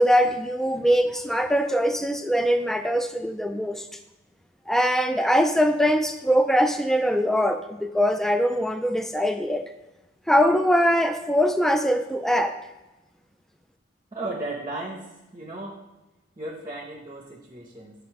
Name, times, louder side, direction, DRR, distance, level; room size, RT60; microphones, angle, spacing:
voice 1, 0.0-3.9 4.7-9.6 10.3-12.6, equal, ahead, 8 dB, 0.4 m, -22 dB
voice 2, 14.1-15.9 16.4-18.1, right 2 dB, 25° right, 0 dB, 0.9 m, -35 dB
9.3 x 3.5 x 4.8 m, 1.0 s
head